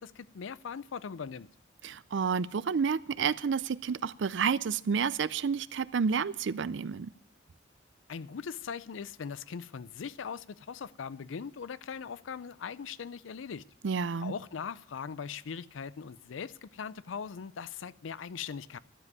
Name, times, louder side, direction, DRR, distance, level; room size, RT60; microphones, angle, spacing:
voice 1, 0.0-1.5 8.1-13.7 14.2-18.8, left 6 dB, 80° left, 0.4 m, -40 dB
voice 2, 1.8-7.1 13.8-14.3, right 6 dB, 70° right, 0.4 m, -30 dB
12.0 x 7.5 x 9.4 m
head